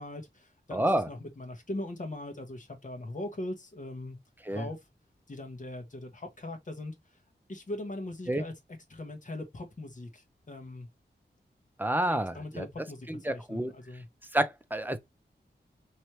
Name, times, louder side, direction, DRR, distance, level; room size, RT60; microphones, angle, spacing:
voice 1, 0.0-4.2 4.5-4.8 5.3-6.9 7.5-8.5 8.9-10.9 12.1-14.1, left 1 dB, 45° left, 1.4 m, -40 dB
voice 2, 0.7-1.1 4.4-4.7 8.3-8.4 11.8-12.7 13.1-13.7 14.3-15.0, right 1 dB, 10° right, 0.6 m, -29 dB
4.5 x 3.2 x 3.1 m
wide cardioid pair, 100°, 18 cm